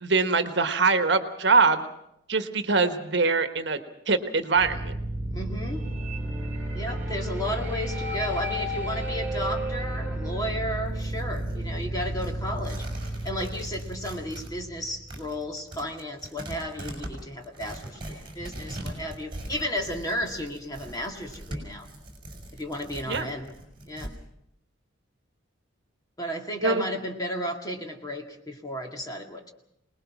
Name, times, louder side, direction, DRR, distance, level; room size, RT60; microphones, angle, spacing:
voice 1, 0.0-1.8 2.3-3.8 4.1-4.9 23.1-23.3 26.6-26.8, right 4 dB, 60° right, 9 dB, 1.4 m, -23 dB
sound 1, 4.5-15.5, right 1 dB, 10° right, 2.4 m, -32 dB
voice 2, 5.3-5.8 6.7-21.9 22.5-23.5 23.9-24.1 26.2-29.5, equal, 20° left, 2 dB, 2.1 m, -33 dB
Tearing, 10.9-14.5 14.8-24.1, right 1 dB, 25° right, 5.8 m, -41 dB
24.5 x 20.0 x 6.1 m, 0.77 s
head